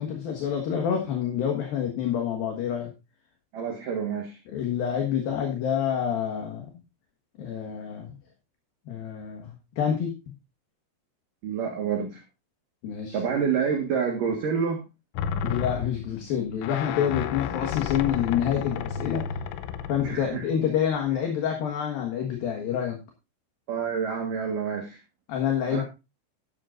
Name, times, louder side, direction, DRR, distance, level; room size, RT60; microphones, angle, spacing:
voice 1, 0.0-2.9 4.5-6.7 7.4-8.2 8.9-10.3 12.8-13.2 15.4-19.4 19.9-23.0 25.3-25.8, left 9 dB, 60° left, 3 dB, 2.7 m, -27 dB
voice 2, 3.5-4.4 11.4-12.2 13.1-14.8 20.0-20.5 23.7-25.0 25.7-25.8, right 6 dB, 60° right, 2 dB, 2.4 m, -28 dB
sound 1, 15.2-20.4 21.1-21.2, left 7 dB, 80° left, 3.3 m, -32 dB
13.0 x 11.5 x 2.5 m, 0.26 s
omnidirectional pair, 5.7 m